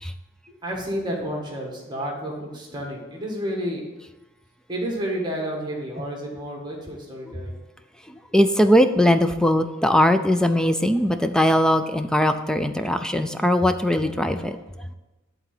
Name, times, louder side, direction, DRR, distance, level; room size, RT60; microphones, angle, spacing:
voice 1, 0.5-3.9 4.7-7.5, equal, 20° right, -2 dB, 1.7 m, -30 dB
voice 2, 8.3-14.6, equal, 5° left, 9 dB, 0.4 m, -20 dB
11.0 x 3.9 x 7.7 m, 1.1 s
head